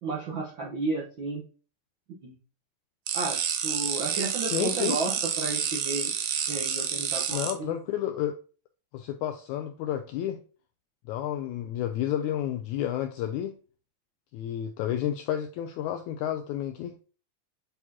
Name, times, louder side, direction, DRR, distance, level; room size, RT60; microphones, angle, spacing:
voice 1, 0.0-1.4 2.2-2.3 3.1-3.4 3.6-6.1 6.5-7.7, right 3 dB, 65° right, -4 dB, 1.2 m, -32 dB
sound 1, 3.1-7.5, right 8 dB, 90° right, 2.4 m, -29 dB
voice 2, 4.5-5.0 7.3-8.4 8.9-10.4 11.1-13.5 14.3-17.0, left 11 dB, 85° left, 5 dB, 1.7 m, -31 dB
7.9 x 4.2 x 2.8 m, 0.36 s
omnidirectional pair, 3.8 m